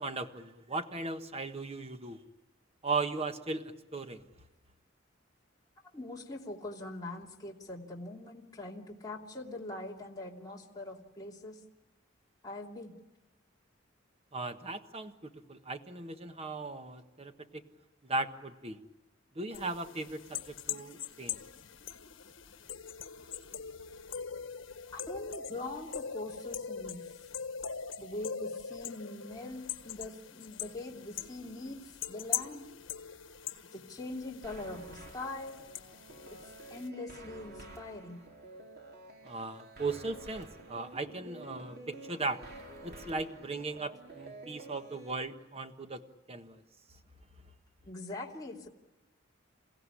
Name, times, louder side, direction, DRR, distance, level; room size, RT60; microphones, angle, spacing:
voice 1, 0.0-2.2 2.8-4.2 14.3-17.6 18.0-18.8 19.3-21.4 39.2-42.4 42.8-46.0 46.3-46.6, right 3 dB, 30° right, 8 dB, 1.4 m, -37 dB
voice 2, 5.9-11.6 12.4-12.9 24.9-27.0 28.0-32.7 33.7-35.6 36.3-36.4 36.7-38.2 47.8-48.7, left 2 dB, 20° left, -2 dB, 2.9 m, -42 dB
sound 1, 19.5-36.9, left 8 dB, 80° left, 1.4 m, -42 dB
sound 2, 34.4-45.1, right 2 dB, 55° right, 3.1 m, -50 dB
28.5 x 16.0 x 10.0 m, 1.1 s
head